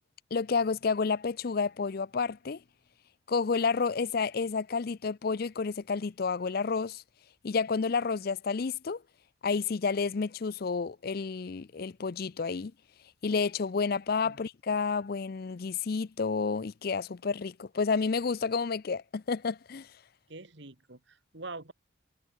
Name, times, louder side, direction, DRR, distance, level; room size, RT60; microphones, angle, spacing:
voice 1, 0.3-2.6 3.3-7.0 7.4-9.0 9.4-12.7 13.2-19.9, left 5 dB, 50° left, 0.5 m, -30 dB
voice 2, 20.3-21.7, right 3 dB, 60° right, 2.1 m, -44 dB
head